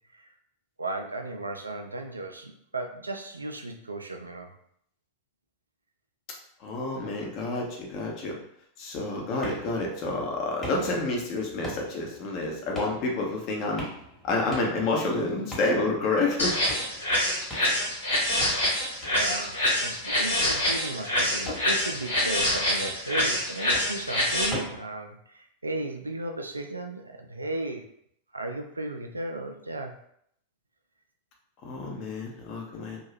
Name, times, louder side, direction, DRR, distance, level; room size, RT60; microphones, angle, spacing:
voice 1, 0.8-4.5 19.1-27.8 28.3-29.9, right 2 dB, 80° right, 4 dB, 0.4 m, -35 dB
voice 2, 6.6-8.3 8.8-13.9 14.2-16.6 31.6-33.0, left 2 dB, 40° left, -1 dB, 0.8 m, -29 dB
sound 1, 9.4-24.8, left 1 dB, 15° left, 1.1 m, -43 dB
sound 2, 16.4-24.5, left 1 dB, 70° left, 1.0 m, -26 dB
2.7 x 2.3 x 3.2 m, 0.69 s
figure-of-eight pair, 90°, 0 cm